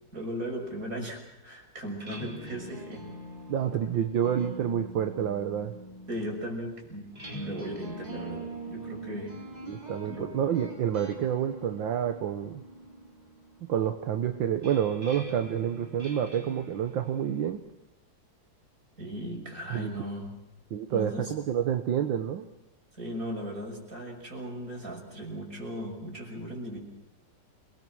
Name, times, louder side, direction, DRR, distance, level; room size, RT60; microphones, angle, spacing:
voice 1, 0.1-3.1 6.1-9.4 10.0-10.3 19.0-20.3 20.9-21.3 22.9-26.8, equal, 45° right, 1 dB, 6.6 m, -37 dB
sound 1, 1.8-17.5, equal, 20° right, 3.8 m, -44 dB
voice 2, 3.5-5.7 9.7-12.6 13.6-17.6 19.7-19.9 20.7-22.5, right 9 dB, 80° right, 7 dB, 1.8 m, -28 dB
28.5 x 20.0 x 6.2 m, 0.92 s
omnidirectional pair, 2.1 m